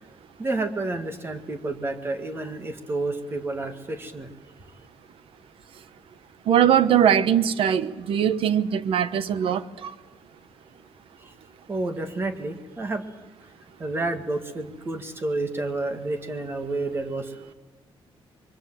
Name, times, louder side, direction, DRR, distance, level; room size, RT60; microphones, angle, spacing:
voice 1, 0.4-4.3 11.2-11.3 11.7-13.0 13.8-17.5, right 2 dB, 25° right, 1.9 m, -30 dB
voice 2, 6.5-9.6, right 9 dB, 75° right, 1.0 m, -21 dB
25.5 x 23.0 x 7.6 m
wide cardioid pair, 160°, 10 cm